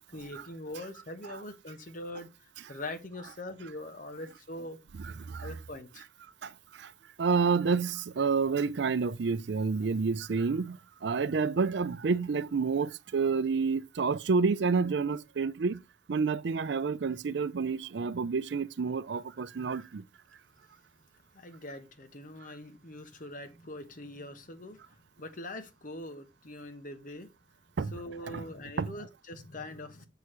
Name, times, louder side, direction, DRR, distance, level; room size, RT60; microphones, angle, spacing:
voice 1, 0.1-4.8 5.4-6.1 21.3-27.3 27.9-30.1, left 1 dB, 45° left, 1.0 m, -43 dB
voice 2, 5.0-5.5 6.4-6.5 6.8-6.9 7.2-15.8 16.1-20.0 27.8-27.9 28.3-28.4 28.8-28.9, right 5 dB, 65° right, 0.5 m, -29 dB
6.9 x 6.2 x 3.2 m
head